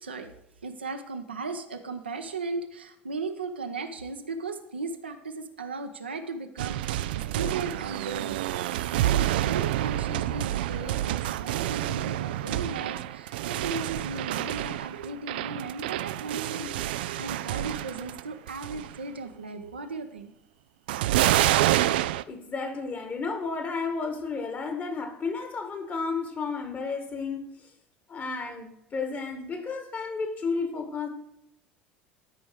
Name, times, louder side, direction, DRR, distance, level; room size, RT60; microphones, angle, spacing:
voice 1, 0.0-0.3 0.6-20.3, right 3 dB, 85° right, 0.9 m, -36 dB
sound 1, 6.6-18.2 18.5-19.0 20.9-22.2, right 14 dB, 65° right, 0.3 m, -28 dB
voice 2, 22.3-27.7 28.1-31.1, left 4 dB, 30° left, 1.9 m, -32 dB
12.5 x 5.3 x 4.8 m
figure-of-eight pair, 65°, 6 cm